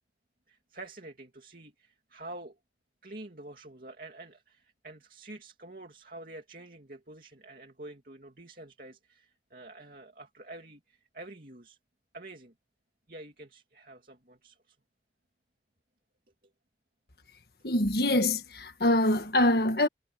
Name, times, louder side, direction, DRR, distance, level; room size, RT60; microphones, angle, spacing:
voice 1, 0.5-2.6 3.0-11.8 12.1-12.5 13.1-14.8, right 2 dB, 50° right, 2.8 m, -47 dB
voice 2, 17.6-19.9, left 1 dB, 60° left, 1.7 m, -24 dB
head